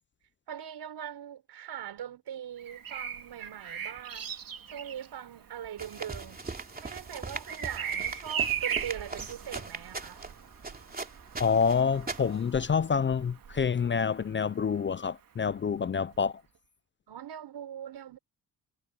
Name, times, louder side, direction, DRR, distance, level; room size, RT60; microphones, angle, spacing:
voice 1, 0.5-4.3 4.7-10.2 17.1-18.2, right 9 dB, 80° right, 5.1 m, -41 dB
Bird vocalization bird call bird song, 2.6-14.4 16.1-16.3, right 8 dB, 55° right, 3.6 m, -38 dB
sound 1, 5.8-12.5, right 3 dB, 20° right, 3.0 m, -40 dB
voice 2, 11.4-16.4, left 6 dB, 30° left, 0.5 m, -27 dB
cardioid pair, 115°, 40 cm